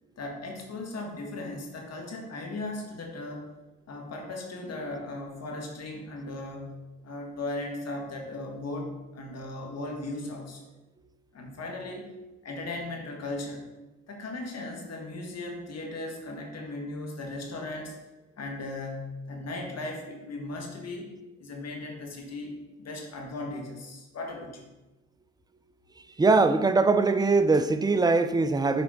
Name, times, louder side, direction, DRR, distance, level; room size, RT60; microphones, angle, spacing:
voice 1, 0.2-3.5 3.9-10.7 11.3-12.1 12.4-13.7 14.1-18.0 18.4-21.1 21.4-24.7, left 2 dB, 50° left, 1 dB, 1.6 m, -37 dB
voice 2, 26.2-28.8, right 3 dB, 10° right, 10 dB, 0.5 m, -22 dB
6.9 x 4.5 x 3.7 m, 1.0 s
hypercardioid pair, 50°, 32 cm